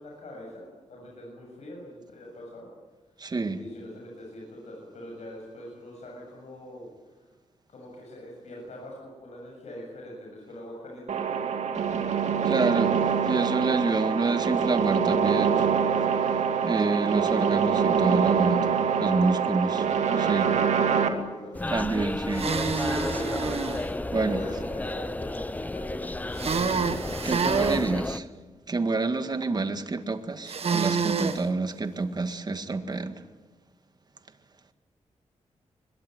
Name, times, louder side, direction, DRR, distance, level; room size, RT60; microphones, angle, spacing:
voice 1, 0.0-2.7 3.5-6.9 7.1-7.3 7.7-12.8 13.6-13.9 18.8-21.7 23.7-26.5, left 1 dB, 70° left, 7.6 m, -44 dB
voice 2, 3.2-3.6 12.5-12.9 13.2-15.7 16.6-18.8 19.0-19.8 20.3-20.5 21.7-22.5 23.6-23.8 24.1-24.4 27.2-28.3 28.7-33.2, right 3 dB, 35° right, 1.9 m, -27 dB
sound 1, 11.1-21.1, right 7 dB, 75° right, 2.5 m, -25 dB
sound 2, 21.5-28.2, left 2 dB, 15° left, 0.8 m, -32 dB
sound 3, 22.3-23.8 26.3-27.8 30.5-31.4, right 5 dB, 60° right, 1.8 m, -27 dB
22.5 x 22.0 x 9.5 m
cardioid pair, 95°, 12 cm